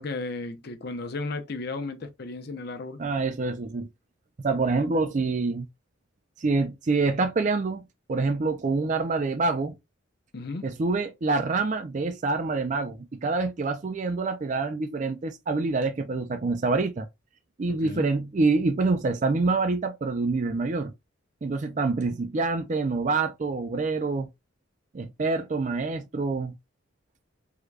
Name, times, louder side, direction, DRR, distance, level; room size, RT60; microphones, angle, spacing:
voice 1, 0.0-3.0 10.3-10.7 17.7-18.1, left 3 dB, 50° left, 0.6 m, -34 dB
voice 2, 3.0-3.9 4.4-5.7 6.4-9.7 10.6-17.1 17.6-20.9 21.4-24.3 24.9-26.5, right 3 dB, 35° right, 0.4 m, -26 dB
3.6 x 2.2 x 3.1 m
head